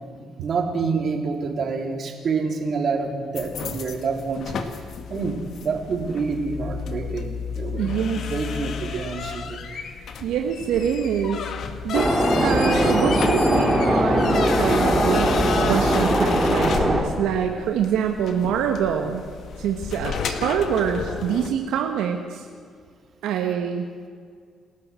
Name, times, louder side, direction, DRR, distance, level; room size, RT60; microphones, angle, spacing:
voice 1, 0.1-4.7 5.1-9.6, right 4 dB, 55° right, 3 dB, 3.9 m, -28 dB
sound 1, 3.3-21.5, left 6 dB, 65° left, 2.0 m, -32 dB
voice 2, 7.8-8.3 9.7-11.5 11.8-12.1 12.4-19.2 19.6-22.4 23.2-23.8, right 8 dB, 90° right, 4 dB, 1.5 m, -25 dB
sound 2, 11.9-17.0, equal, 5° right, 6.9 m, -20 dB
29.5 x 14.0 x 7.7 m, 2.1 s
cardioid pair, 90°, 0 cm